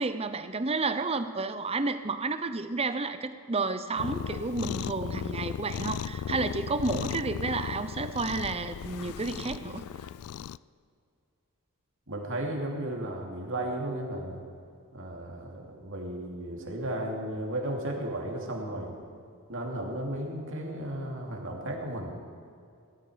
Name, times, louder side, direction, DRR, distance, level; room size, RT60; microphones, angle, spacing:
voice 1, 0.0-9.8, right 3 dB, 25° right, 11 dB, 0.7 m, -31 dB
Cat, 4.0-10.6, left 8 dB, 75° left, 0.3 m, -36 dB
voice 2, 12.1-14.4 14.9-18.9 19.5-22.1, right 1 dB, 60° right, 0 dB, 2.8 m, -34 dB
18.5 x 13.0 x 5.1 m, 2.4 s
head